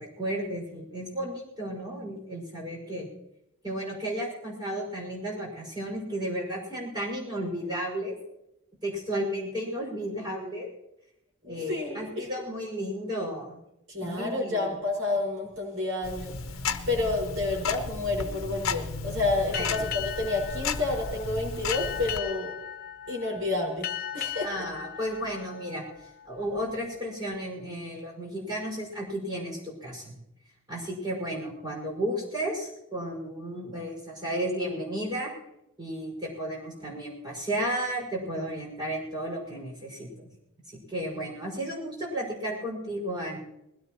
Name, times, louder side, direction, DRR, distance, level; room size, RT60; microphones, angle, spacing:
voice 1, 0.0-3.1 3.6-8.2 8.8-10.7 11.5-13.6 14.0-14.7 19.5-19.8 24.4-30.2 30.7-35.3 35.8-40.3 40.7-43.4, equal, 20° right, -3 dB, 5.7 m, -33 dB
voice 2, 11.4-12.3 13.9-16.3 16.9-22.5 23.1-24.5, left 2 dB, 75° right, -1 dB, 5.3 m, -30 dB
Tick-tock, 16.0-22.2, left 4 dB, 70° left, 0.9 m, -34 dB
Boat Water vehicle, 19.5-26.6, left 10 dB, 45° left, 0.9 m, -38 dB
21.5 x 17.0 x 3.0 m, 0.84 s
head